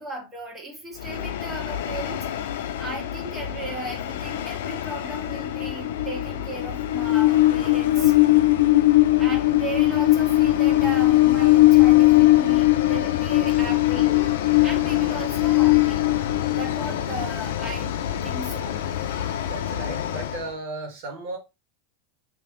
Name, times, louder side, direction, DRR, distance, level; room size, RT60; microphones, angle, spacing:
voice 1, 0.0-2.2 2.8-8.1 9.2-14.1 14.6-16.0 16.4-18.0 18.2-18.9, right 2 dB, 15° right, 1.5 m, -36 dB
Train, 1.0-20.5, left 16 dB, 80° left, 0.5 m, -21 dB
voice 2, 19.4-21.4, right 2 dB, 65° right, 1.5 m, -35 dB
3.4 x 2.9 x 3.2 m
supercardioid pair, 130°, 0 cm